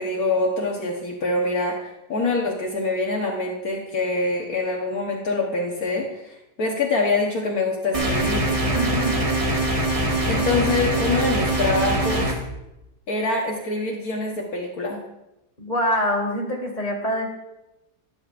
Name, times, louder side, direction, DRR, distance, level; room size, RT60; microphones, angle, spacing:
voice 1, 0.0-8.5 10.3-12.3 13.1-15.0, left 3 dB, 65° left, -1 dB, 1.6 m, -25 dB
sound 1, 7.9-12.3, right 1 dB, 20° right, 1.4 m, -23 dB
voice 2, 8.7-9.2 15.6-17.3, equal, 25° left, 0 dB, 2.2 m, -25 dB
12.5 x 10.5 x 2.5 m, 0.92 s
omnidirectional pair, 1.7 m